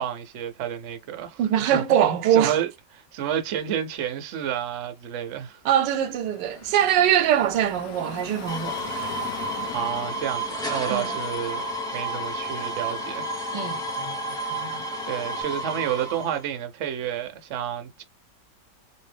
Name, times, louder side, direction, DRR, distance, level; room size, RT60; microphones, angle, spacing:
voice 1, 0.0-1.4 1.7-2.0 2.3-2.7 3.1-5.6 9.7-11.7 11.9-13.3 14.4-14.6 15.0-18.0, right 9 dB, 60° right, 0.7 m, -30 dB
voice 2, 1.4-2.6 5.6-9.1 10.9-11.1 13.5-14.2 14.5-14.8, right 10 dB, 90° right, 1.2 m, -23 dB
Car passing by / Traffic noise roadway noise, 5.8-12.7, left 8 dB, 65° left, 1.0 m, -42 dB
sound 1, 8.5-16.4, right 1 dB, 5° left, 0.7 m, -31 dB
sound 2, 9.8-15.4, left 7 dB, 85° left, 1.3 m, -42 dB
3.1 x 2.7 x 3.2 m
omnidirectional pair, 1.9 m